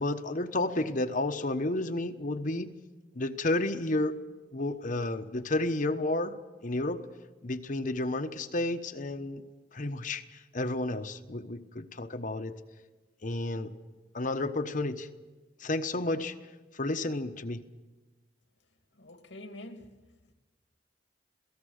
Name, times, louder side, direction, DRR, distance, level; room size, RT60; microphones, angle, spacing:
voice 1, 0.0-2.7 3.1-4.1 4.5-6.3 6.6-7.0 7.4-12.6 13.2-13.7 14.1-15.1 15.6-16.3 16.7-17.6, left 2 dB, 45° left, 1.1 m, -31 dB
voice 2, 18.9-20.3, left 1 dB, 90° left, 2.4 m, -47 dB
27.5 x 18.0 x 6.5 m
head